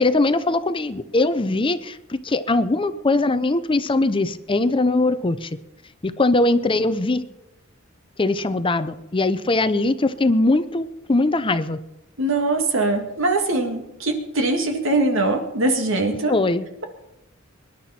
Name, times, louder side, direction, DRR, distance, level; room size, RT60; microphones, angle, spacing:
voice 1, 0.0-5.5 6.0-7.3 8.2-11.8 16.3-16.6, left 2 dB, 25° left, 12 dB, 0.6 m, -21 dB
voice 2, 12.2-16.3, right 2 dB, 65° right, 4 dB, 2.1 m, -22 dB
24.0 x 11.0 x 4.3 m, 0.95 s
head